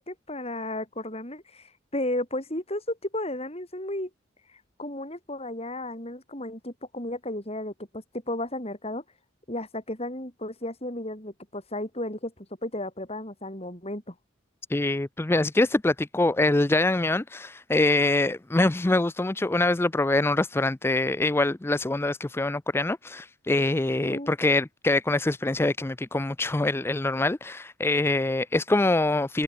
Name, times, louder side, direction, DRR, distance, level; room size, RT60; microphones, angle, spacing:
voice 1, 0.0-4.1 4.8-9.0 9.5-14.1 24.0-24.3, left 1 dB, 30° left, 7.7 m, -34 dB
voice 2, 14.7-29.4, left 2 dB, 10° left, 0.4 m, -24 dB
head